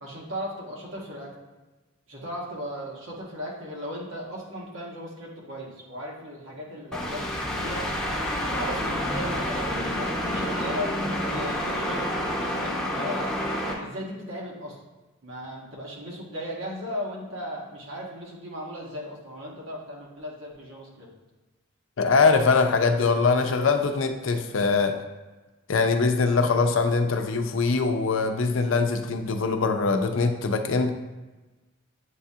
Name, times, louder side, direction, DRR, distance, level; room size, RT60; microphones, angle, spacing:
voice 1, 0.0-1.3 2.1-7.9 8.5-12.1 12.4-13.3 13.8-14.8 15.2-21.1, equal, 85° right, -3 dB, 1.3 m, -36 dB
sound 1, 6.9-13.7, left 1 dB, 5° left, 0.7 m, -28 dB
voice 2, 22.0-24.9 25.7-30.9, left 4 dB, 75° left, 6 dB, 0.5 m, -22 dB
8.1 x 2.7 x 2.4 m, 1.2 s
head